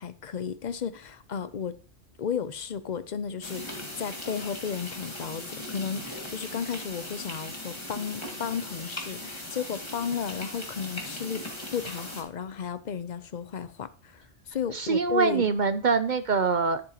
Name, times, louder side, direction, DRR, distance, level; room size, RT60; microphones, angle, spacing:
voice 1, 0.0-1.8 2.2-11.5 11.7-15.5, left 7 dB, 50° left, 0.6 m, -34 dB
sound 1, 3.4-12.2, left 1 dB, 20° left, 2.0 m, -39 dB
voice 2, 14.7-16.8, right 5 dB, 50° right, 0.6 m, -24 dB
10.5 x 8.7 x 2.9 m
omnidirectional pair, 1.2 m